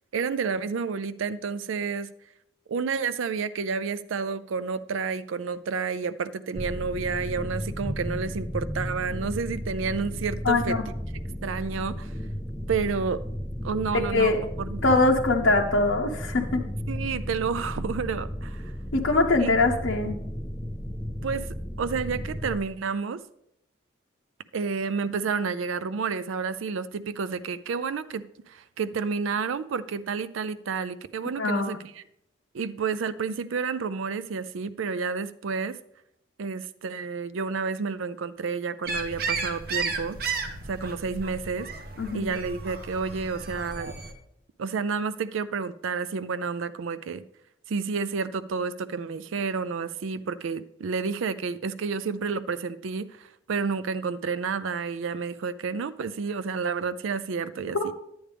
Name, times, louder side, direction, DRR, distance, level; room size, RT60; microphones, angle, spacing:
voice 1, 0.1-2.1 2.7-10.8 11.4-12.1 12.7-13.2 13.6-14.8 16.9-18.6 19.4-19.6 21.2-23.2 24.5-32.0 32.5-35.8 36.4-40.2 40.7-41.7 42.1-43.9 44.6-47.2 47.7-57.9, right 5 dB, 80° right, 0.4 m, -30 dB
sound 1, 6.6-22.6, equal, 5° left, 0.4 m, -34 dB
voice 2, 10.4-10.8 13.9-14.4 14.8-16.6 18.9-20.2 31.4-31.8 42.0-42.3 57.7-57.8, left 3 dB, 70° left, 0.8 m, -23 dB
sound 2, 38.8-44.1, right 4 dB, 50° right, 1.0 m, -33 dB
11.0 x 8.6 x 3.4 m
head